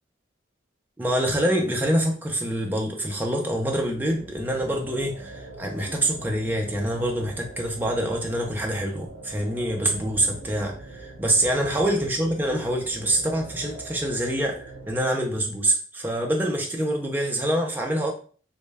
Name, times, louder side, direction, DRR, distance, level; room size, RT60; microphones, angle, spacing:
voice 1, 1.0-18.1, right 1 dB, 10° right, 1 dB, 0.3 m, -25 dB
sound 1, 3.5-15.0, right 2 dB, 40° right, 1.1 m, -42 dB
2.1 x 2.1 x 3.2 m, 0.42 s
head